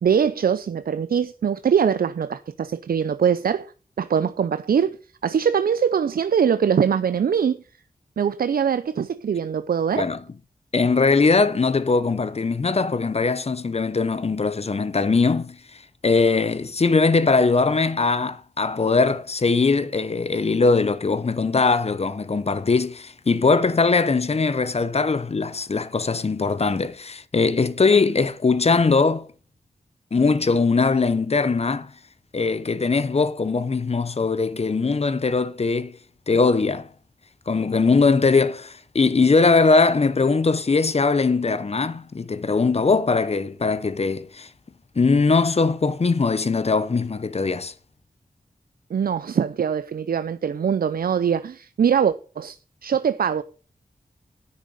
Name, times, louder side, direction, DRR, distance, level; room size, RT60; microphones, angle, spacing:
voice 1, 0.0-3.7 4.0-5.0 5.2-7.6 8.2-10.1 48.9-52.6 52.8-53.4, right 7 dB, 75° right, 0.5 m, -22 dB
voice 2, 10.7-15.6 16.0-29.3 30.1-31.9 32.3-36.0 36.3-36.9 37.5-44.5 45.0-47.7, left 4 dB, 45° left, 0.8 m, -21 dB
9.9 x 6.6 x 6.4 m
wide cardioid pair, 80°, 15 cm